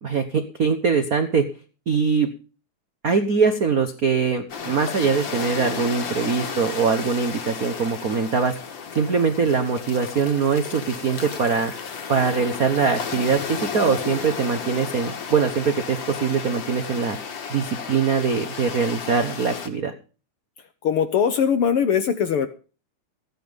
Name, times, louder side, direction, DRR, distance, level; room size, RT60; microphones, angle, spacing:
voice 1, 0.0-1.4 1.9-2.3 3.0-8.5 8.9-11.7 12.1-17.2 17.5-19.9, right 5 dB, 70° right, 7 dB, 0.8 m, -22 dB
sound 1, 4.5-19.7, left 6 dB, 45° left, 1.9 m, -33 dB
voice 2, 20.8-22.5, left 7 dB, 65° left, 10 dB, 1.4 m, -21 dB
15.0 x 10.0 x 5.2 m, 0.36 s
omnidirectional pair, 3.4 m